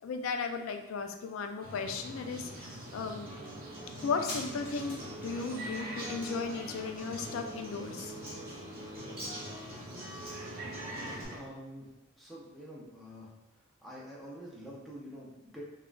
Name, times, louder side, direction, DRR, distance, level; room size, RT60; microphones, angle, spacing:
voice 1, 0.0-3.3 4.0-8.1, left 5 dB, 65° left, 6 dB, 0.3 m, -36 dB
sound 1, 1.6-11.4, right 1 dB, 45° right, 0.6 m, -45 dB
Acoustic guitar, 3.3-11.2, right 1 dB, 25° right, 1.0 m, -44 dB
sound 2, 4.1-11.2 11.4-11.5, left 1 dB, 50° left, 0.9 m, -50 dB
voice 2, 11.3-13.3 13.8-15.6, equal, ahead, -5 dB, 0.6 m, -47 dB
3.5 x 2.2 x 2.4 m, 0.99 s
head